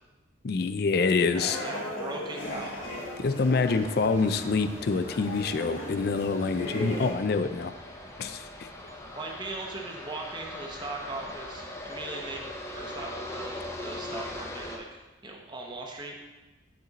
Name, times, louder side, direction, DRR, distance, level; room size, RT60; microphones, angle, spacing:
voice 1, 0.4-1.6 3.2-7.7 8.2-8.7, left 4 dB, 55° left, 10 dB, 0.4 m, -26 dB
sound 1, 1.3-7.1, left 1 dB, 85° left, 1.5 m, -37 dB
voice 2, 1.6-2.9 9.2-16.2, right 2 dB, 25° right, 0 dB, 0.9 m, -39 dB
sound 2, 2.4-14.8, left 1 dB, 15° left, 0.7 m, -41 dB
9.4 x 4.4 x 4.0 m, 1.2 s
head